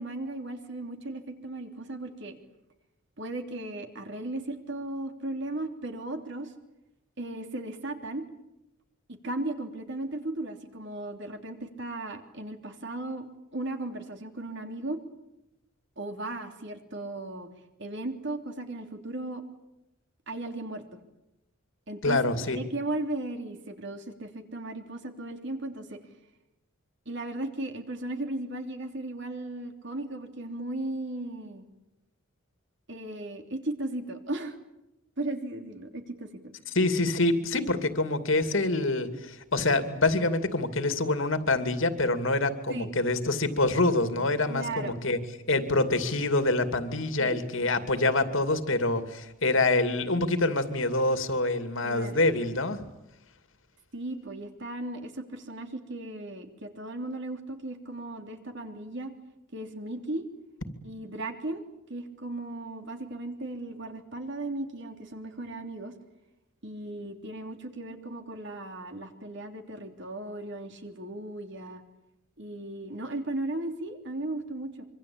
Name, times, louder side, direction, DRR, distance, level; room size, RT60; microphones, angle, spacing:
voice 1, 0.0-2.3 3.2-6.5 7.2-8.2 9.1-13.3 13.5-15.0 16.0-17.5 17.8-19.4 20.3-20.8 21.9-22.2 22.5-26.0 27.0-31.6 32.9-34.6 35.2-36.5 42.7-42.9 44.5-45.0 47.2-47.4 51.8-52.2 53.9-59.1 59.5-60.2 60.8-61.6 61.9-65.9 66.6-71.8 72.4-74.9, right 2 dB, 55° right, 5 dB, 3.3 m, -36 dB
voice 2, 22.0-22.6 36.7-45.2 45.5-52.8, left 2 dB, 65° left, 9 dB, 2.6 m, -26 dB
25.5 x 25.0 x 8.8 m, 0.90 s
head